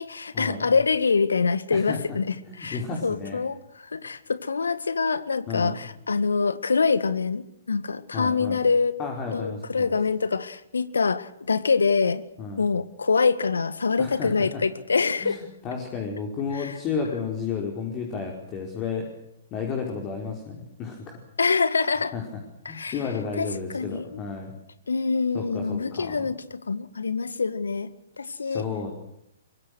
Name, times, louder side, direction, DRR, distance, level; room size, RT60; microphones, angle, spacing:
voice 1, 0.0-9.0 9.3-12.2 12.6-15.4 16.5-16.7 21.4-22.1 22.7-23.0 23.4-24.2 24.9-27.9 28.2-28.7, left 4 dB, 75° left, 14 dB, 1.8 m, -25 dB
voice 2, 2.5-3.4 5.5-5.8 8.1-8.6 9.0-9.9 12.4-12.6 14.0-14.3 15.2-19.1 19.5-21.2 22.1-22.2 22.7-24.5 25.3-26.3 28.4-28.9, left 5 dB, 30° left, 1 dB, 4.9 m, -32 dB
24.0 x 23.0 x 6.4 m, 0.80 s
figure-of-eight pair, 120°, 0 cm